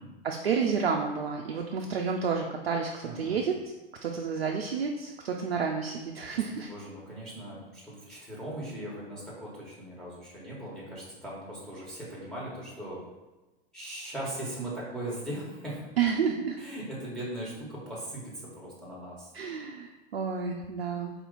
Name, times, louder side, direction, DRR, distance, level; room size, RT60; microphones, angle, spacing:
voice 1, 0.2-3.7 4.0-6.7 16.0-16.6 19.3-21.1, right 6 dB, 80° right, 1 dB, 0.5 m, -30 dB
voice 2, 3.0-3.4 6.3-13.0 13.7-15.8 16.6-19.3, right 1 dB, ahead, -8 dB, 1.3 m, -39 dB
4.2 x 2.8 x 4.0 m, 1.1 s
figure-of-eight pair, 95°, 29 cm